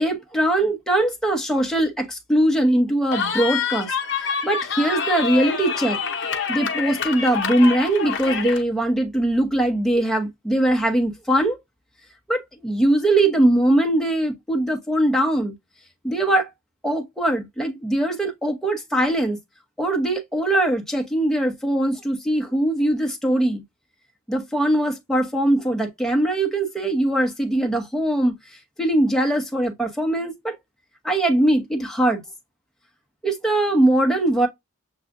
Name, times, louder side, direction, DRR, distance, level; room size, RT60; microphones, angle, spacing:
voice 1, 0.0-6.0 6.5-11.6 12.3-15.5 16.0-16.5 16.8-19.4 19.8-23.6 24.3-28.3 28.8-30.6 31.0-32.2 33.2-34.5, right 1 dB, ahead, 0.9 m, -21 dB
Cheering, 3.1-8.6, left 6 dB, 60° left, 0.8 m, -26 dB
7.0 x 2.4 x 2.6 m
head